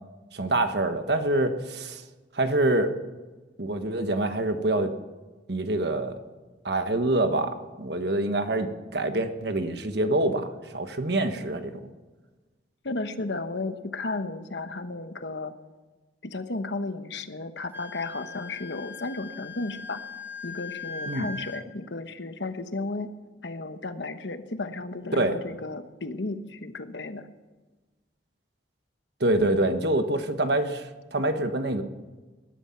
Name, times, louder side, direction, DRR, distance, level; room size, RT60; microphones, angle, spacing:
voice 1, 0.3-2.0 2.3-2.9 3.6-4.9 5.5-6.1 6.6-11.7 21.1-21.3 25.1-25.4 29.2-30.8 31.1-31.8, right 2 dB, 60° right, 8 dB, 1.3 m, -26 dB
voice 2, 12.8-15.5 16.2-20.0 20.4-23.1 23.4-27.2, left 3 dB, 70° left, 9 dB, 1.1 m, -34 dB
Wind instrument woodwind instrument, 17.7-21.6, left 5 dB, 15° right, 2.5 m, -40 dB
20.5 x 11.5 x 5.9 m, 1.3 s
head